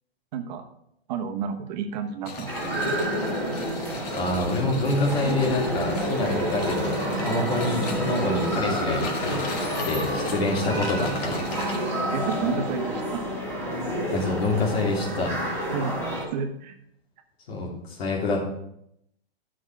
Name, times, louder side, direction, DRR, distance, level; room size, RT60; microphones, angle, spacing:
voice 1, 0.3-0.7 1.1-3.0 12.1-13.2 15.7-15.9 16.3-16.7, right 6 dB, 45° right, 5 dB, 1.2 m, -31 dB
sound 1, 2.2-11.8, left 3 dB, 40° left, 1.5 m, -37 dB
sound 2, 2.5-16.3, equal, 10° left, 2.0 m, -29 dB
voice 2, 4.0-11.5 11.8-11.9 14.1-15.3 17.5-18.4, left 2 dB, 70° left, -3 dB, 3.0 m, -27 dB
sound 3, 6.2-12.8, right 8 dB, 25° right, 0.6 m, -39 dB
9.9 x 6.3 x 4.7 m, 0.76 s
hypercardioid pair, 155°, 31 cm